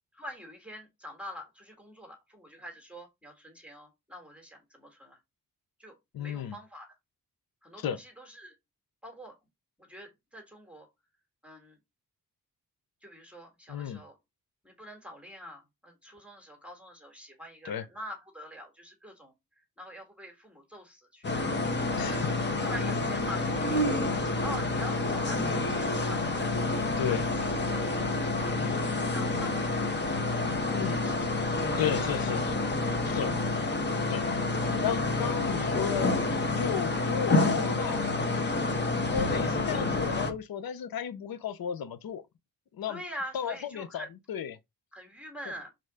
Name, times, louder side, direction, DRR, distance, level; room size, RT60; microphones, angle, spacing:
voice 1, 0.2-5.2 5.8-7.0 7.6-8.6 9.0-9.4 9.9-10.9 11.4-11.8 13.0-14.2 14.6-19.3 19.8-21.3 21.9-22.2 22.6-24.0 24.4-26.9 27.2-27.9 28.4-32.1 42.9-44.1 44.9-45.7, equal, 5° right, 1.7 m, -45 dB
voice 2, 6.1-6.6 7.8-8.0 13.7-14.0 17.6-17.8 22.0-22.2 27.0-27.3 30.7-31.0 31.7-32.6 33.0-33.3 34.1-34.2 34.8-36.1 36.6-38.0 39.1-42.2 42.7-43.0 43.3-44.6, left 9 dB, 75° left, 0.8 m, -34 dB
sound 1, 21.2-40.3, left 2 dB, 30° left, 1.3 m, -28 dB
6.5 x 3.9 x 4.8 m
wide cardioid pair, 170°, 36 cm